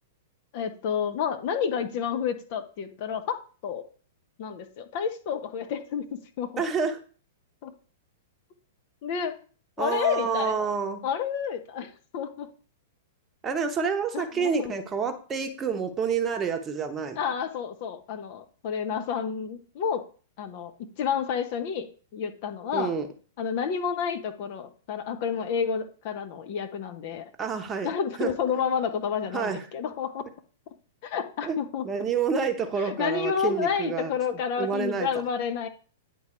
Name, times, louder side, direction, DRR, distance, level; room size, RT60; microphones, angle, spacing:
voice 1, 0.5-3.8 4.4-6.6 7.6-7.7 9.0-9.3 9.8-10.8 11.0-12.5 14.1-14.7 17.2-20.0 20.4-22.9 23.4-27.3 27.8-30.3 31.0-31.8 32.8-35.7, left 7 dB, 45° left, 7 dB, 1.0 m, -30 dB
voice 2, 6.6-7.0 9.8-11.0 13.4-17.2 22.7-23.1 27.4-27.9 28.2-28.3 29.3-29.6 31.4-31.6 31.8-34.1 34.6-35.1, right 6 dB, 20° right, 5 dB, 1.0 m, -28 dB
9.7 x 3.9 x 4.4 m, 0.40 s
figure-of-eight pair, 100°, 0 cm